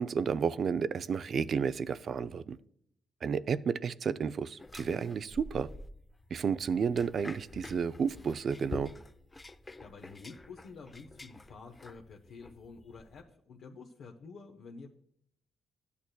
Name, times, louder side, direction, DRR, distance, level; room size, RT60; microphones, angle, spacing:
voice 1, 0.0-2.6 3.2-5.7 6.3-8.9, right 6 dB, 55° right, 15 dB, 0.4 m, -31 dB
sound 1, 4.6-13.2, left 2 dB, 20° left, 0.5 m, -48 dB
voice 2, 9.8-14.9, left 4 dB, 65° left, 1 dB, 0.9 m, -49 dB
12.5 x 8.3 x 2.2 m, 0.69 s
cardioid pair, 90°, 0 cm